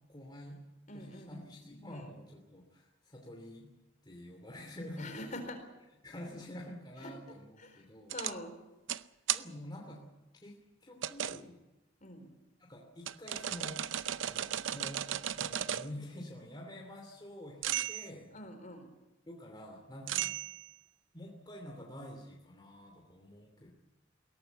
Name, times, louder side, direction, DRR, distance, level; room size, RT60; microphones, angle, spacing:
voice 1, 0.1-0.6 0.9-3.7 4.0-5.3 6.0-8.1 9.3-10.0 10.4-11.6 12.6-13.8 14.2-15.0 15.3-18.3 19.3-20.3 21.1-23.7, left 1 dB, 25° left, 0 dB, 2.9 m, -48 dB
voice 2, 0.9-1.4 1.9-2.0 5.0-5.6 7.0-7.1 7.6-7.8 8.1-8.5 12.0-12.3 18.3-18.9 20.1-20.2, left 1 dB, 45° left, 7 dB, 4.1 m, -44 dB
sound 1, 8.1-8.3 8.9-9.0 9.3-9.4 11.0-11.4 13.1-15.9 17.6-18.1 20.1-20.7, right 11 dB, 85° right, 0.7 m, -35 dB
21.5 x 17.5 x 8.2 m, 1.0 s
head